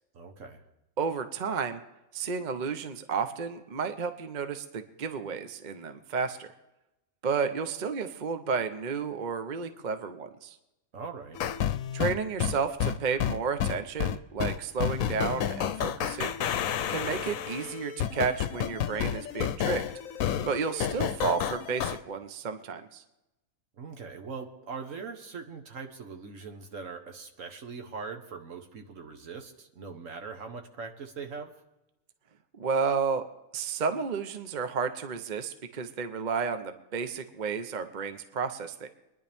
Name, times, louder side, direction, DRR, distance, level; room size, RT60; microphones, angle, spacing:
voice 1, 0.1-0.6 10.9-11.4 23.8-31.5, right 5 dB, 70° right, 5 dB, 1.6 m, -41 dB
voice 2, 1.0-1.8 2.1-6.5 7.2-10.6 11.9-16.3 16.9-19.8 20.5-23.0 32.6-33.2 33.5-38.9, right 5 dB, 40° right, 9 dB, 0.8 m, -32 dB
sound 1, 11.4-22.0, left 9 dB, 75° left, 1.0 m, -30 dB
25.0 x 10.5 x 3.5 m, 0.94 s
omnidirectional pair, 1.4 m